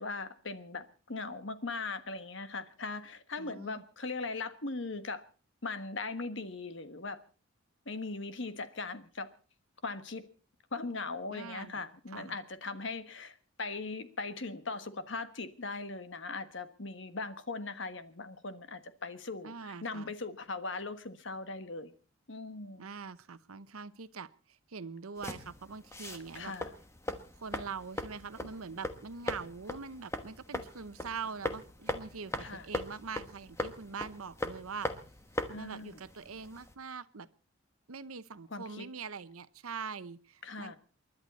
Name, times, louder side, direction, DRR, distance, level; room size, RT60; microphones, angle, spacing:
voice 1, 0.0-5.2 5.6-7.2 7.8-9.3 9.8-10.2 10.7-21.9 22.3-22.9 26.3-26.7 32.4-32.7 35.5-36.0 38.5-38.9 40.4-40.8, left 3 dB, 60° left, 1.4 m, -39 dB
voice 2, 3.4-3.8 11.3-12.4 19.4-20.1 22.8-26.5 27.3-34.9 35.5-37.3 37.9-40.8, right 5 dB, 90° right, 0.9 m, -43 dB
sound 1, 25.2-36.7, left 1 dB, 15° left, 1.2 m, -40 dB
28.5 x 11.5 x 4.2 m
head